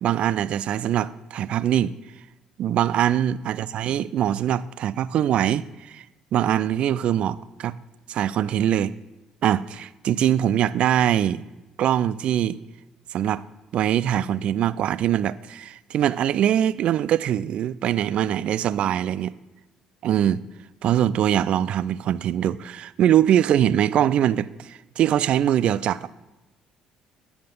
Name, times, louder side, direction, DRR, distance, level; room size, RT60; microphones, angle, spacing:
voice 1, 0.0-1.9 2.6-6.0 6.3-7.7 8.1-8.9 9.4-11.4 11.8-12.6 13.1-13.4 13.7-19.3 20.0-20.4 20.8-26.1, right 10 dB, 55° right, 0.3 m, -22 dB
9.2 x 4.7 x 5.3 m
hypercardioid pair, 50°, 2 cm